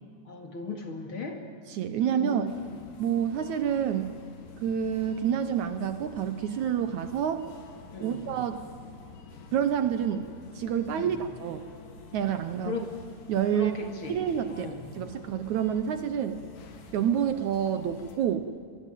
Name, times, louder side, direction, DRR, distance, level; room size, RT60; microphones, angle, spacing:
voice 1, 0.3-1.4 2.1-2.8 7.9-8.2 10.9-11.2 12.7-12.9 13.5-14.2 14.5-14.9, left 5 dB, 40° left, 4 dB, 2.6 m, -36 dB
voice 2, 1.7-2.5 3.0-4.2 4.6-7.5 8.0-8.7 9.5-11.6 12.1-12.8 13.3-13.8 14.1-16.4 16.9-18.5, right 9 dB, 70° right, 10 dB, 2.1 m, -28 dB
sound 1, 2.5-18.2, left 4 dB, 70° left, 3.9 m, -48 dB
24.5 x 21.5 x 9.2 m, 2.3 s
omnidirectional pair, 3.9 m